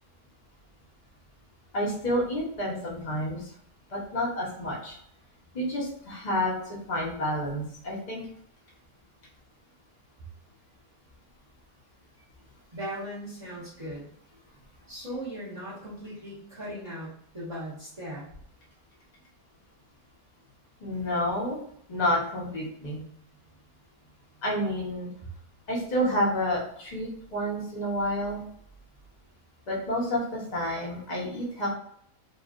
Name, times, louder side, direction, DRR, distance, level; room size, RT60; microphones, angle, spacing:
voice 1, 1.7-3.4 3.9-5.0 5.5-6.5 6.9-8.2 20.8-21.6 21.9-23.0 24.4-25.1 25.7-28.4 29.7-31.7, equal, 35° left, -4 dB, 0.8 m, -29 dB
voice 2, 12.7-14.1 14.9-18.2, equal, 25° right, -10 dB, 0.8 m, -38 dB
3.2 x 2.4 x 2.4 m, 0.67 s
omnidirectional pair, 1.9 m